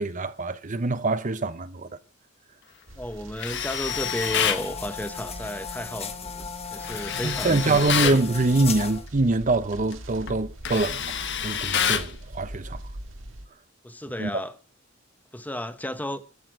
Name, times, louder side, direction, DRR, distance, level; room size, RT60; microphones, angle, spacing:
voice 1, 0.0-1.9 7.2-12.8 14.2-14.3, right 2 dB, 40° right, 0.8 m, -24 dB
sound 1, 2.9-13.5, right 1 dB, 70° right, 1.9 m, -42 dB
voice 2, 3.0-8.3 13.8-14.5 15.3-16.2, left 1 dB, 10° left, 1.0 m, -33 dB
Tools, 3.4-4.7 6.8-8.2 9.7-9.9 10.3-12.1, left 8 dB, 60° left, 1.3 m, -27 dB
sound 2, 3.9-9.1, left 6 dB, 30° left, 1.3 m, -36 dB
14.0 x 6.6 x 8.8 m
head